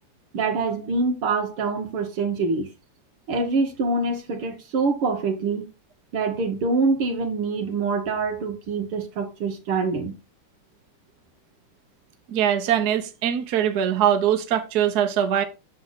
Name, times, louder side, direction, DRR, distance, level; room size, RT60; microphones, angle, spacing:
voice 1, 0.3-2.7 3.3-5.7 6.1-10.2, right 3 dB, 90° right, 2.6 m, -25 dB
voice 2, 12.3-15.4, right 9 dB, 55° right, 1.4 m, -22 dB
8.6 x 6.7 x 4.0 m
omnidirectional pair, 2.3 m